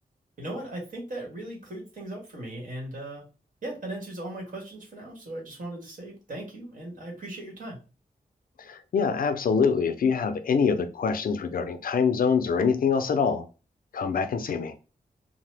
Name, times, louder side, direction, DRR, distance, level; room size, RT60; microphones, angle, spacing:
voice 1, 0.4-3.2 3.6-7.8, right 1 dB, 60° right, 1.3 m, -38 dB
voice 2, 8.6-13.4 13.9-14.7, left 6 dB, 65° left, 0.4 m, -25 dB
2.8 x 2.0 x 3.2 m
wide cardioid pair, 140°, 16 cm